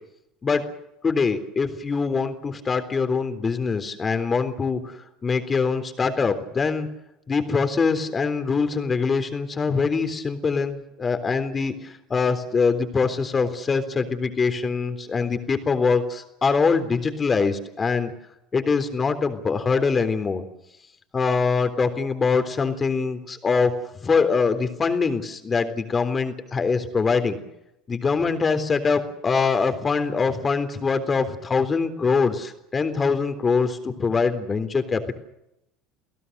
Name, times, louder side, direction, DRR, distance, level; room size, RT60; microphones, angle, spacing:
voice 1, 1.0-4.8 5.2-6.9 7.3-11.8 12.1-18.1 18.5-20.4 21.1-23.7 24.0-27.4 27.9-35.2, left 5 dB, 25° left, 8 dB, 3.6 m, -23 dB
30.0 x 17.0 x 6.8 m, 0.83 s
hypercardioid pair, 70°, 0 cm